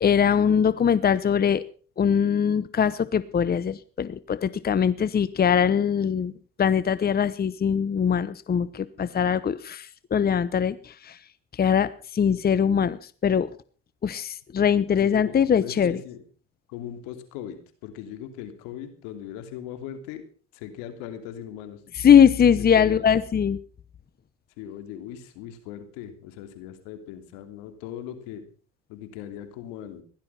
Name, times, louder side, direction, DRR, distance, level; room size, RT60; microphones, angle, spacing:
voice 1, 0.0-1.6 2.0-6.3 6.6-11.1 11.6-13.5 14.0-15.9 22.0-23.6, left 7 dB, 30° left, 16 dB, 0.9 m, -21 dB
voice 2, 14.9-16.2 16.7-20.2 20.5-21.8 22.6-23.1 24.6-28.4 28.9-30.0, left 10 dB, 90° left, 9 dB, 3.0 m, -39 dB
16.0 x 12.0 x 5.7 m, 0.40 s
supercardioid pair, 95°, 32 cm